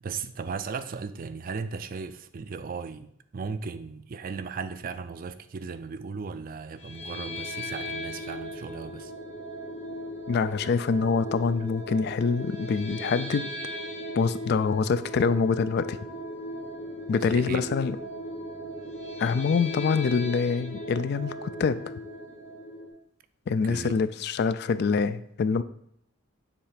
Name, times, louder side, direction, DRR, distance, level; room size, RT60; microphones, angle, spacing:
voice 1, 0.0-9.1 17.2-17.6 23.6-23.9, right 5 dB, 45° right, 0.4 m, -36 dB
sound 1, 6.8-22.9, equal, 90° left, 1.6 m, -38 dB
voice 2, 10.3-13.5 14.1-16.0 17.1-18.0 19.2-21.8 23.5-25.6, left 5 dB, 55° left, 0.3 m, -25 dB
7.1 x 3.2 x 5.0 m
head